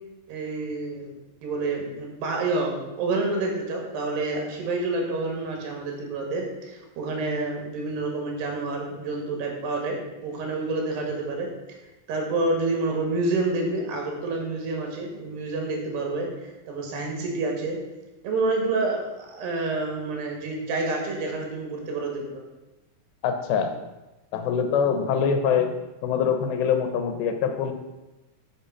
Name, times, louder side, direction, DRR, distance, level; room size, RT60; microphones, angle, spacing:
voice 1, 0.3-1.1 1.4-10.0 10.2-11.5 12.1-17.8 18.2-22.4, right 3 dB, 70° right, 1 dB, 3.8 m, -28 dB
voice 2, 23.2-23.7 24.3-25.7 26.0-27.7, left 7 dB, 80° left, 7 dB, 3.0 m, -24 dB
8.8 x 6.5 x 5.6 m, 1.0 s
omnidirectional pair, 5.1 m